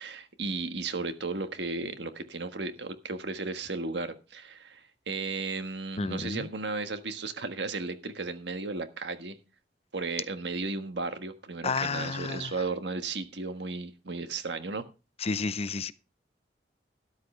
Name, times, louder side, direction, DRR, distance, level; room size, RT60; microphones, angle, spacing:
voice 1, 0.0-9.4 9.9-14.9, right 3 dB, 75° right, 1.5 m, -35 dB
voice 2, 6.0-6.5 11.6-12.5 15.2-15.9, left 4 dB, 35° left, 0.6 m, -31 dB
13.0 x 11.5 x 3.3 m
head